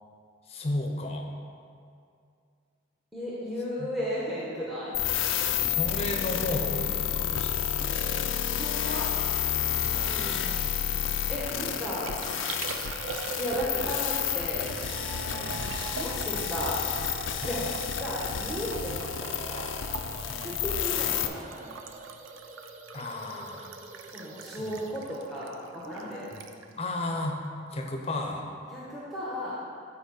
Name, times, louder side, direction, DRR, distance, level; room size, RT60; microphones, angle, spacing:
voice 1, 0.5-1.4 3.8-3.9 5.6-7.8 9.8-10.7 15.3-15.7 17.4-17.5 20.3-20.6 22.9-23.7 24.6-24.8 26.3-26.4 26.8-27.4 27.7-28.5, left 1 dB, 30° left, 2 dB, 0.7 m, -34 dB
voice 2, 3.1-4.9 8.5-9.1 11.3-12.1 13.4-14.7 16.0-16.8 17.4-17.6 18.0-19.7 20.3-21.7 24.1-26.3 28.7-29.6, equal, ahead, -8 dB, 1.0 m, -35 dB
sound 1, 4.9-21.3, left 9 dB, 80° left, 0.5 m, -30 dB
Liquid, 11.3-27.9 28.1-28.7, right 4 dB, 85° right, 0.5 m, -42 dB
sound 2, 14.9-24.9, right 2 dB, 40° right, 0.5 m, -46 dB
9.1 x 4.2 x 5.5 m, 2.4 s
head